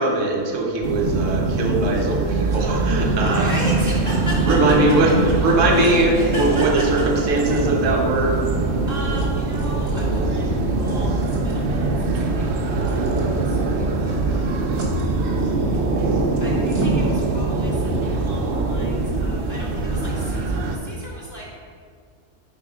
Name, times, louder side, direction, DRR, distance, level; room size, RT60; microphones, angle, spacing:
voice 1, 0.0-3.5 4.5-8.4, right 2 dB, 85° right, 0 dB, 1.2 m, -20 dB
sound 1, 0.8-20.8, right 3 dB, 70° right, 0.9 m, -22 dB
voice 2, 3.0-4.5 5.7-7.0 7.4-7.7 8.9-14.6 16.4-21.4, equal, 15° left, -9 dB, 1.5 m, -36 dB
sound 2, 3.2-17.1, right 2 dB, 25° right, 1.0 m, -40 dB
4.7 x 4.4 x 4.8 m, 2.1 s
omnidirectional pair, 1.3 m